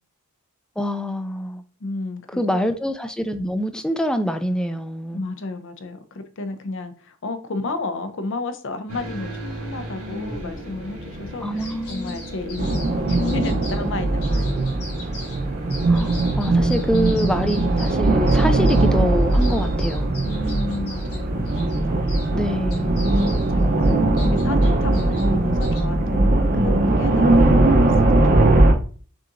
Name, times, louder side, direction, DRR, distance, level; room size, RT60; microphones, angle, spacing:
voice 1, 0.8-1.6 2.4-5.2 11.4-12.2 15.9-20.2 22.3-22.9 23.8-24.7, equal, 5° left, 0.3 m, -25 dB
voice 2, 1.8-2.7 5.1-14.7 20.2-21.5 22.3-22.6 23.5-27.9, left 2 dB, 60° left, 0.6 m, -32 dB
sound 1, 8.9-27.2, equal, 90° right, 2.1 m, -37 dB
sound 2, 11.6-13.9 14.2-15.4 15.7-22.3 22.7-25.8, left 2 dB, 80° left, 1.7 m, -41 dB
sound 3, 12.6-28.7, right 2 dB, 45° right, 0.7 m, -19 dB
6.0 x 2.9 x 2.5 m
head